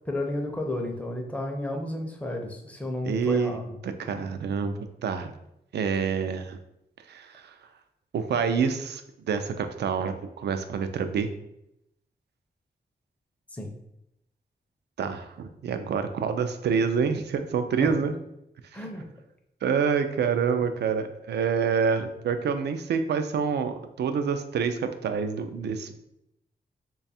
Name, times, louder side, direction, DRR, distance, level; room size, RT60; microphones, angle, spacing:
voice 1, 0.1-3.8 13.5-13.7 17.8-17.9 18.7-19.0, left 1 dB, 10° left, 2 dB, 0.5 m, -32 dB
voice 2, 3.1-3.6 3.8-5.3 5.7-6.6 7.1-7.5 8.1-11.3 15.0-18.2 18.7-18.8 19.6-25.9, right 6 dB, 80° right, 9 dB, 0.4 m, -27 dB
3.2 x 2.3 x 4.1 m, 0.82 s
wide cardioid pair, 135°, 17 cm